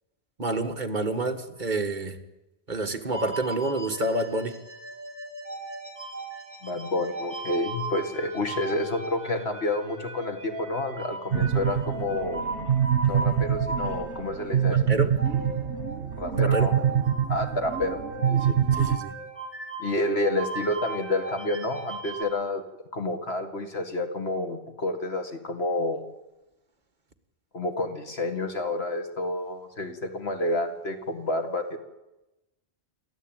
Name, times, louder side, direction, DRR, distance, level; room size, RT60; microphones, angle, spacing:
voice 1, 0.4-2.2 2.7-4.5 14.7-15.1 16.4-16.7 18.8-19.1, right 2 dB, 45° right, 5 dB, 1.9 m, -28 dB
sound 1, 3.1-22.2, right 2 dB, 10° right, 4.0 m, -37 dB
voice 2, 6.6-12.4 13.1-14.9 16.2-16.8 17.3-18.0 18.2-18.6 19.8-22.6 22.9-26.0 27.5-31.8, left 2 dB, 65° left, 5 dB, 2.5 m, -29 dB
sound 2, 11.3-19.0, right 9 dB, 85° right, 1.5 m, -25 dB
28.5 x 13.0 x 9.2 m, 0.99 s
omnidirectional pair, 1.1 m